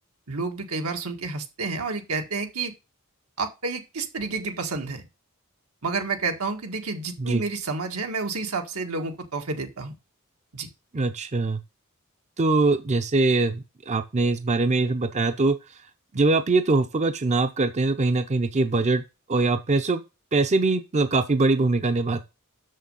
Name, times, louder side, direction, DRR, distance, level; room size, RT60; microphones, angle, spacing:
voice 1, 0.3-2.7 3.4-5.1 5.8-10.0 10.5-10.7, right 4 dB, 85° right, 4 dB, 1.7 m, -30 dB
voice 2, 10.9-11.6 12.4-15.5 16.1-19.0 19.3-20.0 20.3-22.2, right 3 dB, 30° right, 8 dB, 0.6 m, -22 dB
6.7 x 6.5 x 5.4 m, 0.28 s
head